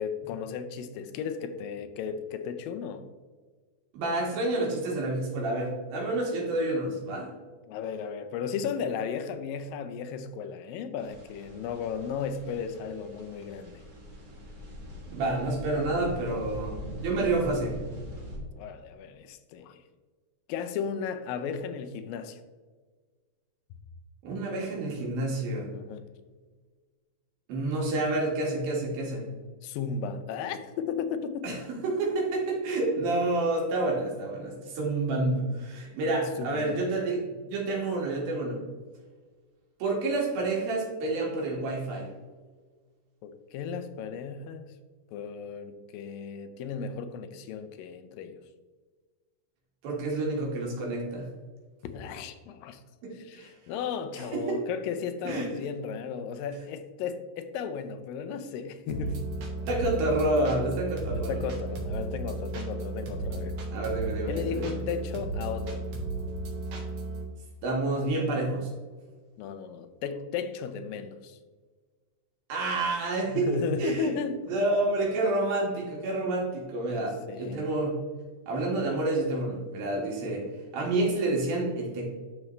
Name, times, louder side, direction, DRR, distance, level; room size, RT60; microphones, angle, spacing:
voice 1, 0.0-3.0 7.7-13.8 18.6-19.8 20.5-22.4 25.7-26.1 29.6-31.6 36.4-37.0 43.2-44.7 45.1-48.4 51.8-52.8 53.2-59.2 61.1-63.5 64.3-65.8 69.4-71.4 73.3-74.4 76.9-77.6, left 6 dB, 80° left, 8 dB, 2.4 m, -35 dB
voice 2, 3.9-7.3 15.1-17.8 24.2-25.7 27.5-29.3 31.4-31.6 31.8-38.6 39.8-42.1 49.8-51.3 53.0-53.5 54.3-54.6 55.2-55.5 59.7-61.4 63.7-64.8 67.6-68.7 72.5-73.5 73.8-74.1 74.5-77.9 78.5-80.4 80.7-82.1, right 2 dB, 90° right, -3 dB, 3.8 m, -29 dB
sound 1, 11.0-18.4, equal, 45° right, 1.4 m, -42 dB
sound 2, 58.9-67.2, right 2 dB, 70° right, 3.0 m, -34 dB
12.5 x 4.4 x 3.2 m, 1.4 s
omnidirectional pair, 4.1 m